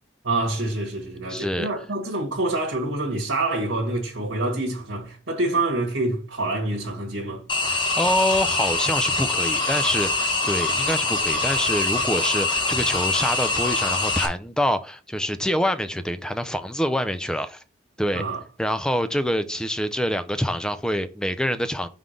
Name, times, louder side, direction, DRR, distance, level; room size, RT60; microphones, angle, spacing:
voice 1, 0.2-7.4 18.1-18.4, right 2 dB, 70° right, 1.5 m, -26 dB
voice 2, 1.3-1.7 7.7-17.6 18.0-18.2 18.6-21.9, equal, 5° left, 0.4 m, -26 dB
sound 1, 7.5-14.3, left 3 dB, 25° left, 1.0 m, -24 dB
5.8 x 3.7 x 5.0 m
head